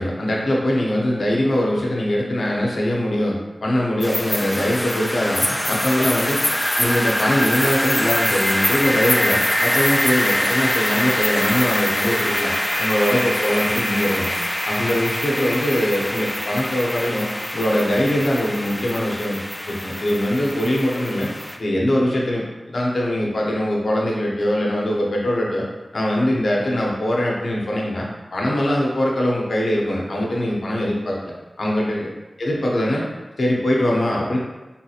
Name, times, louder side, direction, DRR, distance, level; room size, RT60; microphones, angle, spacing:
voice 1, 0.0-6.4 6.8-12.5 12.8-14.3 14.6-17.3 17.5-19.4 19.7-21.3 21.6-25.6 25.9-28.1 28.3-32.1 32.4-33.0 33.4-34.4, left 1 dB, 75° left, -3 dB, 0.7 m, -22 dB
sound 1, 4.0-21.6, left 1 dB, 15° left, 0.3 m, -23 dB
3.6 x 2.8 x 2.4 m, 1.1 s
wide cardioid pair, 75°, 0 cm